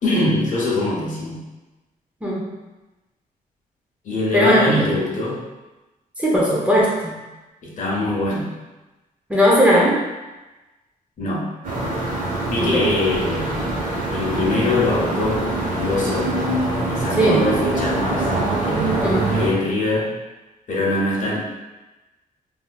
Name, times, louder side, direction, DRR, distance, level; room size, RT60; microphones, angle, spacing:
voice 1, 0.0-1.4 4.0-5.4 7.6-8.5 11.2-11.5 12.5-13.5 14.1-16.4 16.9-18.3 18.6-19.0 19.3-20.1 20.7-21.4, left 2 dB, 60° left, -4 dB, 0.9 m, -23 dB
voice 2, 6.2-7.1 9.3-10.0 12.6-12.9 17.2-17.6 19.0-19.3, equal, 10° right, -5 dB, 0.6 m, -17 dB
sound 1, 11.6-19.5, right 2 dB, 60° right, 1.0 m, -24 dB
3.5 x 2.6 x 2.3 m, 1.1 s
wide cardioid pair, 135°, 15 cm